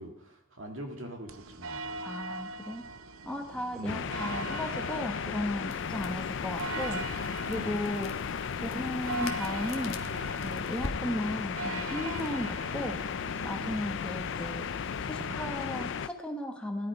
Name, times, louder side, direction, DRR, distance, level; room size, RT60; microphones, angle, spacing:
voice 1, 0.0-1.9 3.7-4.1 7.5-7.8 13.6-13.8, right 1 dB, 70° right, 3 dB, 2.3 m, -42 dB
sound 1, 1.3-16.1, right 3 dB, 90° right, 0.7 m, -42 dB
voice 2, 2.0-2.9 3.2-7.1 7.4-10.1 10.3-13.0 13.4-14.7 15.0-16.9, left 1 dB, 5° left, 3 dB, 1.2 m, -36 dB
sound 2, 3.9-16.1, left 7 dB, 60° left, 0.4 m, -35 dB
Crackle, 5.7-15.3, left 3 dB, 80° left, 1.2 m, -46 dB
17.0 x 10.5 x 4.8 m, 0.85 s
head